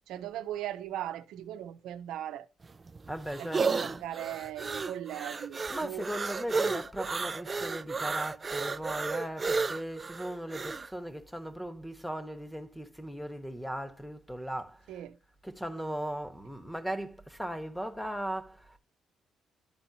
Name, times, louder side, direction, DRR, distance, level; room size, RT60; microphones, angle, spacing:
voice 1, 0.1-2.5 3.4-6.1 14.9-15.2, right 12 dB, 90° right, 0.7 m, -38 dB
sound 1, 2.6-10.9, right 4 dB, 30° right, 0.4 m, -33 dB
voice 2, 3.1-4.1 5.7-14.8 15.4-18.8, right 1 dB, ahead, 1.2 m, -38 dB
12.5 x 4.2 x 2.8 m
cardioid pair, 90°, 0 cm